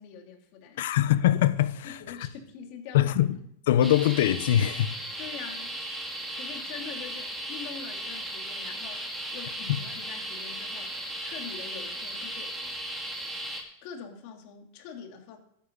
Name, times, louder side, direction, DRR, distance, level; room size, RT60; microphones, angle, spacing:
voice 1, 0.0-0.9 1.8-3.4 5.2-5.8 6.3-12.5 13.8-15.4, left 7 dB, 45° left, 2.7 m, -44 dB
voice 2, 0.8-2.2 2.9-3.4 3.7-5.0, left 12 dB, 70° left, 0.9 m, -23 dB
sound 1, 3.8-13.6, right 1 dB, 5° right, 2.3 m, -36 dB
14.0 x 10.0 x 4.0 m
supercardioid pair, 155°, 0 cm